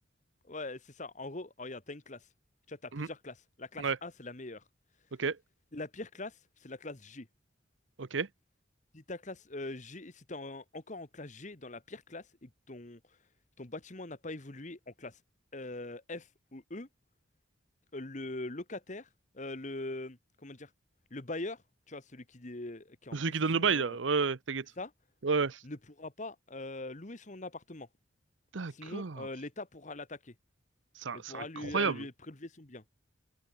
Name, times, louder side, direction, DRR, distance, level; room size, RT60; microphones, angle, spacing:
voice 1, 0.5-2.3 2.7-4.6 5.7-7.3 8.9-13.2 13.6-15.2 15.5-16.9 17.9-19.1 19.3-20.7 21.1-21.6 21.9-24.0 24.8-24.9 25.6-27.9 28.7-30.3 31.1-32.8, left 2 dB, 40° left, 1.6 m, -42 dB
voice 2, 23.1-24.6 25.2-25.6 28.5-29.3 31.0-32.0, right 5 dB, 90° right, 0.8 m, -31 dB
open air
head